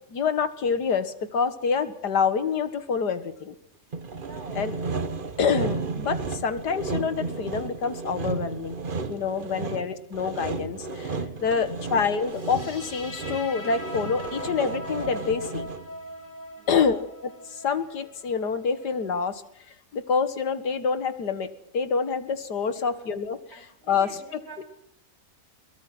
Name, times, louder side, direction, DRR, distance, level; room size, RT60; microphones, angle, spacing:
voice 1, 0.1-3.5 4.6-4.8 5.4-8.8 9.1-15.7 16.7-17.0 17.5-19.4 19.9-21.5 21.7-23.4 23.9-24.6, left 6 dB, 85° left, 11 dB, 2.2 m, -27 dB
Sawing, 3.9-16.0, right 3 dB, 35° right, 1.3 m, -33 dB
voice 2, 4.2-4.8 9.6-9.8 16.6-17.0 22.7-23.1 23.5-24.6, right 3 dB, 60° right, 5 dB, 8.2 m, -46 dB
sound 1, 12.2-19.3, left 1 dB, 30° left, 6.3 m, -41 dB
23.0 x 22.0 x 6.1 m, 0.71 s
omnidirectional pair, 1.7 m